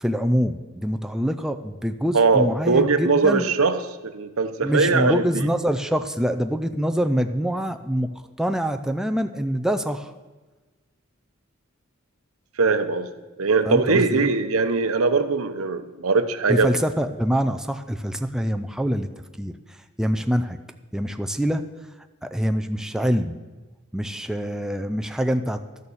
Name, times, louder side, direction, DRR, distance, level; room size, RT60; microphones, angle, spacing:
voice 1, 0.0-3.5 4.6-8.1 8.4-10.1 13.7-14.3 16.5-19.1 19.4-20.6 20.9-21.6 22.2-23.4 23.9-25.6, equal, 5° right, 6 dB, 0.4 m, -25 dB
voice 2, 2.1-5.5 12.6-13.1 13.4-16.7, right 4 dB, 85° right, 10 dB, 0.8 m, -21 dB
12.5 x 6.6 x 7.1 m, 1.3 s
head